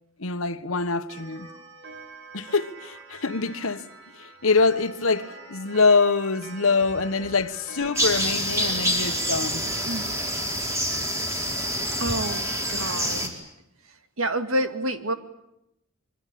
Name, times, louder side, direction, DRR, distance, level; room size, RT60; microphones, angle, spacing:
voice 1, 0.2-1.6 2.3-3.9 4.1-9.7, left 4 dB, 70° left, 1.4 m, -24 dB
Clock, 1.1-13.2, right 4 dB, 60° right, 3.9 m, -45 dB
sound 1, 8.0-13.3, equal, 15° right, 4.5 m, -27 dB
voice 2, 12.0-13.3 14.2-15.1, right 1 dB, 80° right, 2.2 m, -28 dB
25.5 x 24.0 x 8.6 m
head